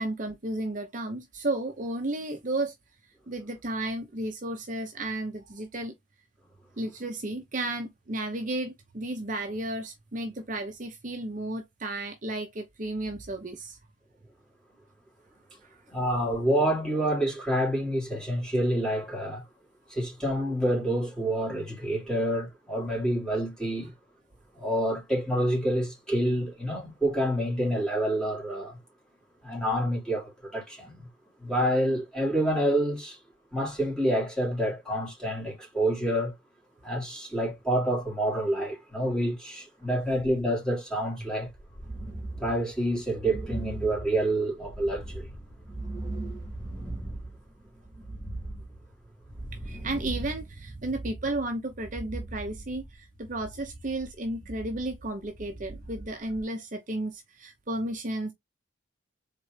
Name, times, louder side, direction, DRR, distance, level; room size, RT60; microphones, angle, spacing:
voice 1, 0.0-2.7 3.3-5.9 6.8-13.8 15.6-15.8 49.6-58.3, right 2 dB, 45° right, 0.8 m, -33 dB
voice 2, 15.9-19.4 19.9-23.9 24.5-28.8 29.4-31.1 31.4-33.2 33.5-36.3 36.8-41.5 42.4-45.3, right 1 dB, 5° left, 2.8 m, -28 dB
sound 1, 41.5-56.4, right 2 dB, 20° right, 2.3 m, -39 dB
4.2 x 3.7 x 3.2 m
head